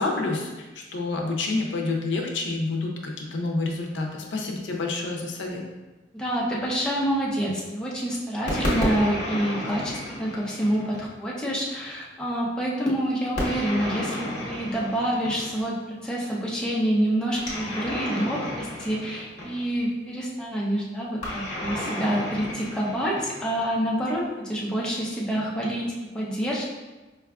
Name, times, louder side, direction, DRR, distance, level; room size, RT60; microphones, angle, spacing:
voice 1, 0.0-5.6, left 3 dB, 75° left, 1 dB, 0.5 m, -28 dB
voice 2, 6.1-26.7, equal, 5° left, -5 dB, 0.5 m, -27 dB
sound 1, 8.5-11.1 13.4-15.7 17.4-19.8 21.2-23.7, left 1 dB, 45° left, 1.0 m, -31 dB
4.7 x 2.3 x 2.3 m, 1.2 s
head